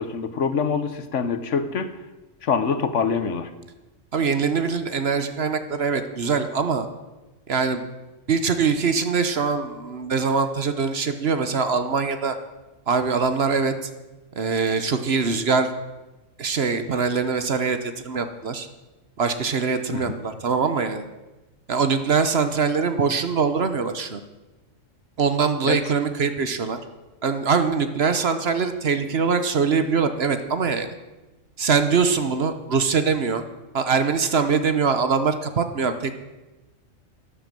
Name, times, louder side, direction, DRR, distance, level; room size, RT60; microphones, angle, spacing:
voice 1, 0.0-1.9 2.4-3.5 19.9-20.2 25.7-25.8, left 5 dB, 65° left, 11 dB, 1.3 m, -25 dB
voice 2, 4.1-6.9 7.5-7.8 8.3-12.4 12.9-13.7 14.4-15.7 16.4-18.7 19.2-21.0 21.7-24.2 25.2-26.8 27.2-30.9 31.6-33.4 33.7-36.1, right 5 dB, 55° right, 9 dB, 1.2 m, -23 dB
12.5 x 10.5 x 7.6 m, 1.1 s
omnidirectional pair, 1.4 m